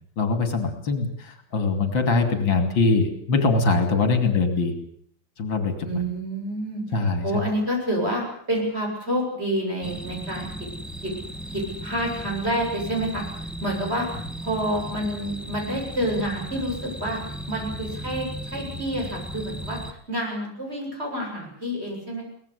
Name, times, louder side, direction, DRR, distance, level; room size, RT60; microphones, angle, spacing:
voice 1, 0.2-4.7 5.4-6.0 6.9-7.3, left 3 dB, 70° left, 7 dB, 3.5 m, -22 dB
voice 2, 5.8-10.5 11.0-11.1 11.5-17.2 17.5-22.2, right 1 dB, 30° right, 0 dB, 8.4 m, -28 dB
sound 1, 9.8-19.9, equal, ahead, 1.4 m, -36 dB
24.0 x 19.0 x 8.3 m, 0.63 s
omnidirectional pair, 2.2 m